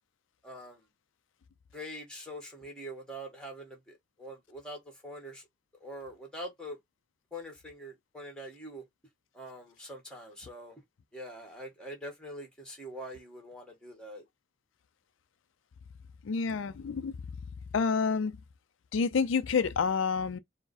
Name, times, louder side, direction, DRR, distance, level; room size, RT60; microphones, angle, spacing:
voice 1, 0.4-0.8 1.7-3.8 4.2-5.4 5.8-6.8 7.3-8.8 9.3-10.8 11.1-14.2, equal, 5° left, 1.5 m, -44 dB
voice 2, 16.2-17.1 17.7-18.4 18.9-20.4, left 5 dB, 75° left, 0.4 m, -28 dB
4.6 x 2.1 x 4.1 m
head